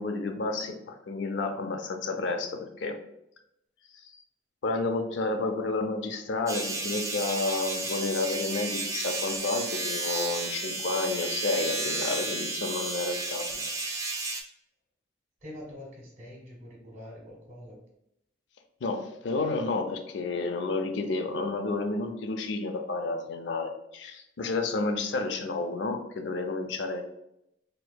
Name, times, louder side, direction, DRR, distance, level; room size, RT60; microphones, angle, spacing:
voice 1, 0.0-3.0 4.6-13.6 18.8-27.0, left 3 dB, 70° left, 5 dB, 0.5 m, -31 dB
sound 1, 6.5-14.4, right 3 dB, 15° right, 0.4 m, -32 dB
voice 2, 15.4-17.8, left 1 dB, 45° right, -3 dB, 1.5 m, -45 dB
4.5 x 2.7 x 2.2 m, 0.82 s
head